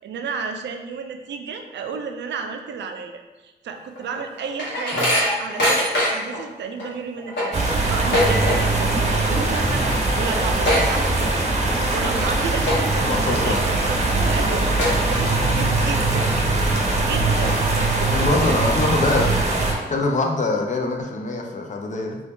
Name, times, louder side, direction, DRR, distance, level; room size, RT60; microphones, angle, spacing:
voice 1, 0.0-7.5 7.9-9.0 9.3-11.5 11.7-16.4 17.0-17.9 18.4-18.6 19.2-19.3, right 5 dB, 80° right, 5 dB, 0.4 m, -32 dB
sound 1, 4.0-6.4 6.8-6.9 7.2-8.9 9.2-9.5 9.8-9.9 10.2-11.6 12.0-12.2 12.6-13.1 13.6-13.7 14.3-14.4 14.8-15.5 15.9-16.0 16.8-16.9 17.3-18.2, left 1 dB, 75° left, 1.2 m, -23 dB
sound 2, 7.5-19.7, right 2 dB, 40° right, 0.7 m, -21 dB
voice 2, 12.9-13.6 18.1-19.3 19.9-22.2, left 2 dB, 40° left, 2 dB, 0.5 m, -23 dB
3.1 x 2.6 x 3.4 m, 1.1 s
wide cardioid pair, 100°, 18 cm